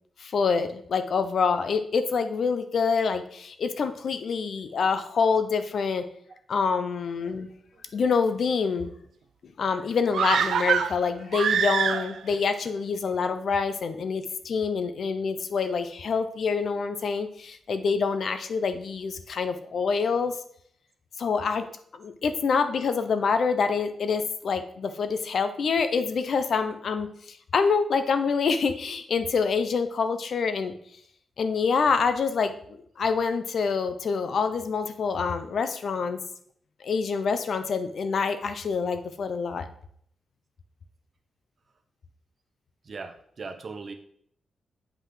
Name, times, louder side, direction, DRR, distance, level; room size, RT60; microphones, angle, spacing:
voice 1, 0.2-6.0 6.5-7.5 7.9-8.9 9.6-20.3 21.2-21.7 21.9-27.1 27.5-30.7 31.4-36.2 36.8-39.7, left 5 dB, 60° left, 10 dB, 0.6 m, -26 dB
sound 1, 10.1-12.4 12.7-12.8, right 8 dB, 80° right, 0.3 m, -25 dB
voice 2, 42.8-43.9, right 4 dB, 45° right, 6 dB, 0.8 m, -39 dB
8.4 x 5.4 x 3.8 m, 0.66 s
wide cardioid pair, 135°, 0 cm